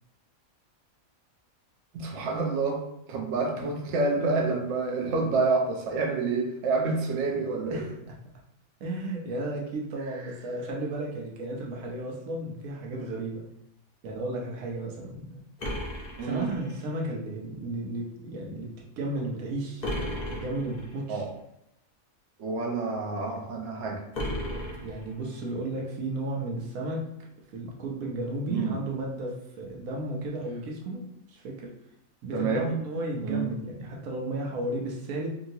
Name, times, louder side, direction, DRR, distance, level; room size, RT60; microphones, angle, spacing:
voice 1, 1.9-2.8 3.1-7.8 16.2-16.5 21.1-21.3 22.4-24.0 28.5-28.7 32.3-32.7 33.2-33.5, right 3 dB, 65° right, 1 dB, 0.8 m, -28 dB
voice 2, 8.8-13.4 14.0-15.4 16.2-21.3 24.8-27.1 27.5-31.0 31.3-31.7 32.2-35.3, right 1 dB, 90° right, -1 dB, 1.2 m, -34 dB
sound 1, 15.6-17.0 19.8-21.0 24.1-25.5, left 1 dB, 40° left, 0.6 m, -34 dB
2.8 x 2.7 x 2.6 m, 0.82 s
omnidirectional pair, 1.4 m